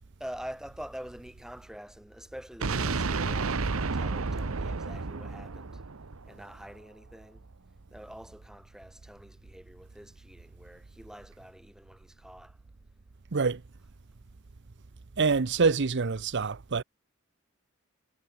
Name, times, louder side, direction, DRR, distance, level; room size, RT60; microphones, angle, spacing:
voice 1, 0.2-5.7 6.3-7.4 7.9-12.5, equal, 5° right, 4.0 m, -45 dB
sound 1, 2.6-6.6, right 4 dB, 80° right, 1.0 m, -31 dB
voice 2, 15.2-16.8, right 4 dB, 55° right, 0.7 m, -26 dB
head